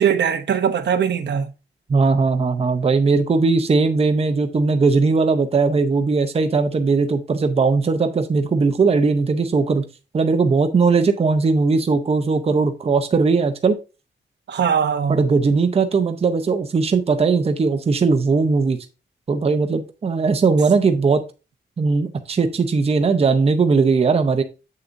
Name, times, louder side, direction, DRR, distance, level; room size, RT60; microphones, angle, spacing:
voice 1, 0.0-1.5 14.5-15.2, right 7 dB, 65° right, 0.8 m, -20 dB
voice 2, 1.9-9.8 10.1-13.8 15.1-18.8 19.3-21.2 21.8-24.4, right 4 dB, 30° right, 0.7 m, -19 dB
7.6 x 6.8 x 2.6 m
wide cardioid pair, 170°, 19 cm